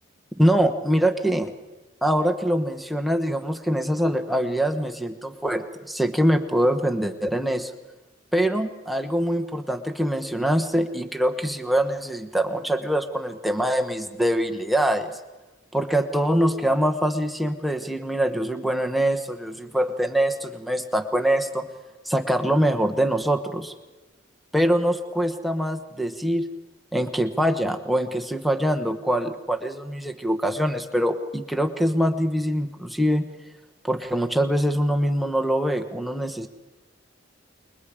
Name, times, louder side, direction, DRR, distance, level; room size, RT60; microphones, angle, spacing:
voice 1, 0.3-1.5 2.0-7.7 8.3-15.2 15.7-21.7 22.0-23.7 24.5-26.5 26.9-33.2 33.8-36.5, equal, ahead, 4 dB, 1.0 m, -24 dB
29.5 x 22.0 x 5.0 m, 1.1 s
head